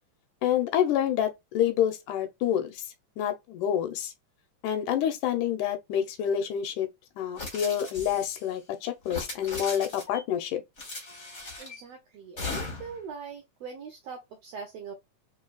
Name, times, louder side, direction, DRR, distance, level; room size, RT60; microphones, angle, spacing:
voice 1, 0.4-2.8 3.2-4.1 4.6-6.9 7.2-10.6, left 10 dB, 85° left, 2.2 m, -28 dB
sound 1, 7.4-8.4 9.0-10.2 10.8-11.8 12.4-13.0, left 3 dB, 45° left, 0.9 m, -38 dB
voice 2, 11.6-15.0, right 6 dB, 75° right, 1.6 m, -42 dB
4.5 x 3.1 x 2.3 m
omnidirectional pair, 3.6 m